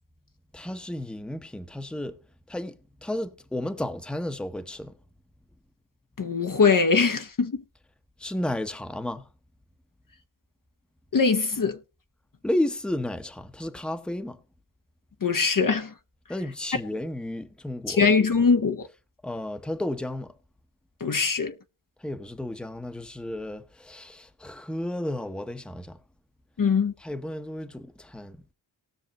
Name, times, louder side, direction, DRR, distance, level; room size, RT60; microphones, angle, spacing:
voice 1, 0.5-2.1 2.5-4.9 8.2-9.3 12.4-14.4 16.3-18.4 19.2-20.3 22.0-26.0 27.0-28.4, left 1 dB, ahead, 0.8 m, -32 dB
voice 2, 6.2-7.5 11.1-11.7 15.2-15.9 17.9-18.8 21.0-21.5 26.6-26.9, left 5 dB, 45° left, 0.8 m, -22 dB
19.0 x 6.4 x 2.9 m
wide cardioid pair, 85°, 47 cm